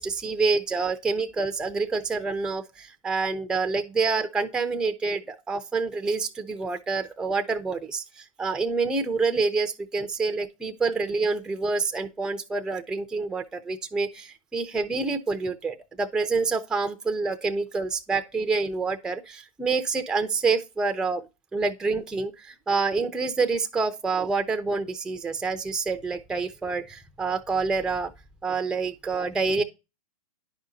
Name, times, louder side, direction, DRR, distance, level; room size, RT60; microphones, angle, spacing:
voice 1, 0.0-21.2 21.5-28.1 28.4-29.6, right 4 dB, 5° right, 0.4 m, -27 dB
10.0 x 5.0 x 2.7 m
hypercardioid pair, 130°, 19 cm